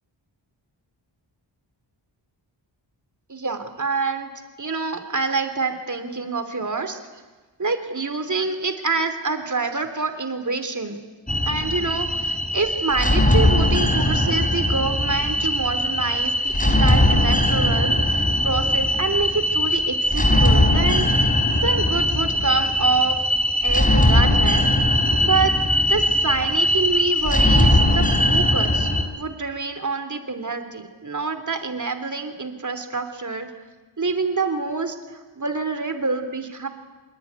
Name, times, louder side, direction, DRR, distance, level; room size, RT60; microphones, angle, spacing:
voice 1, 3.3-4.3 4.6-7.0 7.6-11.0 11.4-21.3 21.6-23.2 23.6-24.6 25.2-25.5 25.9-28.9 29.1-33.5 34.0-36.7, right 4 dB, 40° right, 8 dB, 3.3 m, -26 dB
sound 1, 11.3-29.0, left 1 dB, 15° left, 3.7 m, -20 dB
25.0 x 22.5 x 9.6 m, 1.3 s
wide cardioid pair, 80°, 47 cm